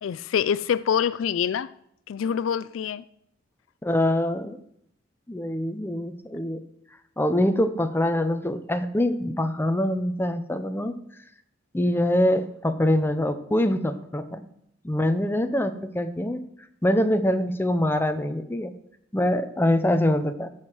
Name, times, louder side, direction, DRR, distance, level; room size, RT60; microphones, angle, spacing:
voice 1, 0.0-1.7 2.1-3.0, left 8 dB, 75° left, 0.3 m, -25 dB
voice 2, 3.8-4.6 5.3-6.6 7.2-11.0 11.7-14.4 14.8-16.4 16.8-18.7 19.1-20.5, left 1 dB, 10° left, 0.6 m, -24 dB
13.0 x 4.9 x 6.1 m
head